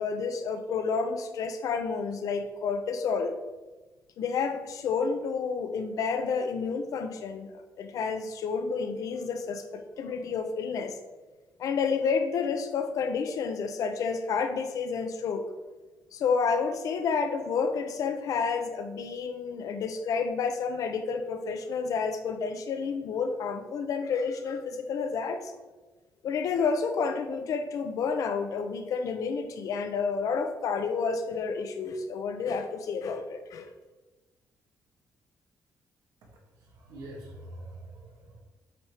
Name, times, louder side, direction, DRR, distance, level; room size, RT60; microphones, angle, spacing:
voice 1, 0.0-3.3 4.2-7.5 7.8-10.9 11.6-15.4 16.1-25.5 26.2-33.7, left 5 dB, 70° left, 7 dB, 0.8 m, -30 dB
voice 2, 36.6-38.4, right 1 dB, 90° right, -1 dB, 1.9 m, -45 dB
8.1 x 3.2 x 5.7 m, 1.2 s
cardioid pair, 125°, 6 cm